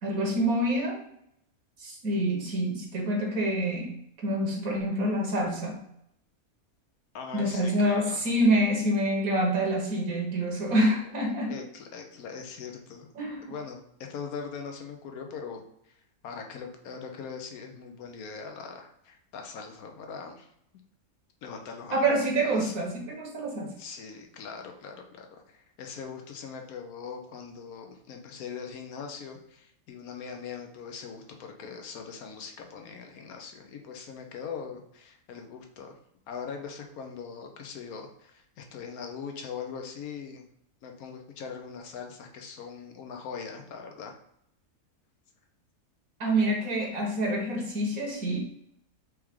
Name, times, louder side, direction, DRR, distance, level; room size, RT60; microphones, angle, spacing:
voice 1, 0.0-1.0 1.8-5.8 7.3-11.6 13.2-13.5 21.9-23.7 46.2-48.4, right 1 dB, 75° right, 0 dB, 1.6 m, -27 dB
voice 2, 7.1-8.2 11.5-13.1 13.5-16.0 16.2-20.5 21.4-22.1 22.4-22.7 23.8-35.9 36.3-40.5 40.8-44.2, left 6 dB, 85° left, 3 dB, 1.2 m, -41 dB
4.7 x 3.1 x 3.6 m, 0.74 s
omnidirectional pair, 1.5 m